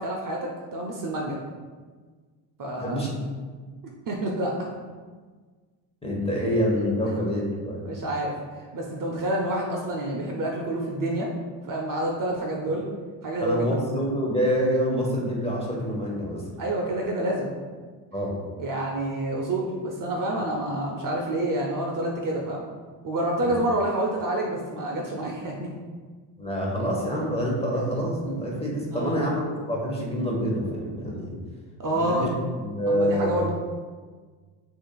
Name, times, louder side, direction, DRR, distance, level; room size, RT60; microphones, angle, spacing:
voice 1, 0.0-1.4 2.6-3.1 4.1-4.7 7.8-8.4 8.7-11.3 11.7-12.9 13.2-14.0 16.6-17.5 18.6-22.7 23.0-25.7 28.9-29.2 31.8-32.3 32.9-33.5, right 1 dB, 40° right, -1 dB, 0.6 m, -28 dB
voice 2, 2.8-3.1 6.0-7.9 13.4-16.4 18.1-18.4 23.4-23.5 26.4-31.3 31.9-32.3 32.6-33.4, equal, 10° left, -2 dB, 1.0 m, -26 dB
6.2 x 2.6 x 2.2 m, 1.5 s
supercardioid pair, 85°, 49 cm